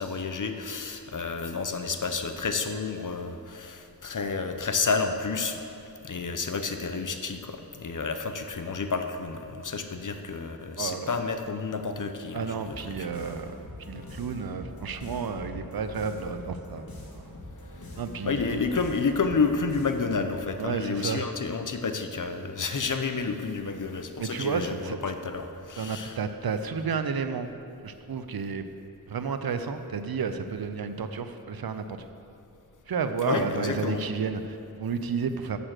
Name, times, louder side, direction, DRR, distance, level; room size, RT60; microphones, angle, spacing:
voice 1, 0.0-5.6 6.0-13.1 18.2-26.2 33.2-34.0, left 4 dB, 60° left, 7 dB, 0.7 m, -30 dB
voice 2, 10.8-11.1 12.3-13.5 13.8-16.9 17.2-17.3 18.0-18.6 20.6-21.3 24.2-25.0 25.8-27.5 27.8-28.6 29.1-32.0 32.9-35.6, right 5 dB, 80° right, 9 dB, 0.6 m, -31 dB
sound 1, 12.7-20.4, left 1 dB, 75° left, 1.8 m, -43 dB
7.4 x 6.8 x 6.5 m, 2.6 s
wide cardioid pair, 40°, 36 cm